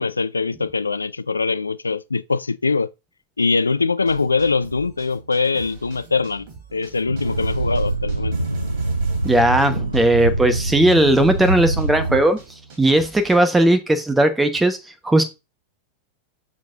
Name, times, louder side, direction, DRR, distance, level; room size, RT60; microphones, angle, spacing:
voice 1, 0.0-2.9 3.4-8.3, left 4 dB, 80° left, 0.3 m, -22 dB
sound 1, 4.0-13.4, right 5 dB, 40° right, 2.9 m, -43 dB
sound 2, 7.1-12.2, right 2 dB, 85° right, 0.4 m, -24 dB
voice 2, 9.2-12.4 12.8-14.8 15.0-15.2, right 1 dB, 10° right, 1.1 m, -17 dB
6.3 x 6.1 x 2.5 m
figure-of-eight pair, 90°, 0 cm